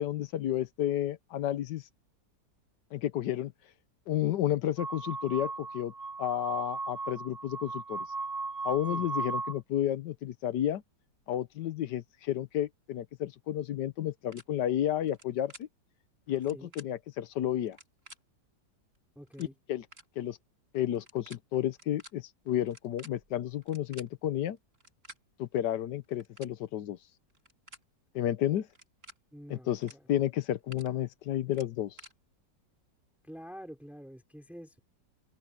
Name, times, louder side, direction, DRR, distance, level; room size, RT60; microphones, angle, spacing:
voice 1, 0.0-1.8 2.9-3.5 4.1-5.9 6.2-8.0 8.6-10.8 11.3-15.7 16.3-17.8 19.4-19.8 20.2-20.4 20.7-24.6 25.4-27.0 28.1-28.7 29.5-32.0, left 12 dB, 70° left, 1.4 m, -31 dB
sound 1, 4.8-9.6, right 3 dB, 20° right, 2.2 m, -37 dB
sound 2, 14.3-14.4 15.1-15.2 15.5-15.6 16.4-16.9 17.7-18.2 19.0-19.1 19.3-19.5 19.9-20.1 20.9-21.4 21.7-22.1 22.7-24.1 24.7-25.2 26.0-26.5 27.3-27.8 28.7-29.2 29.8-30.0 30.3-30.9 31.5-32.1, right 1 dB, 40° right, 6.8 m, -51 dB
voice 2, 19.2-19.5 29.3-30.0 33.2-34.8, equal, ahead, 4.3 m, -47 dB
omnidirectional pair, 2.0 m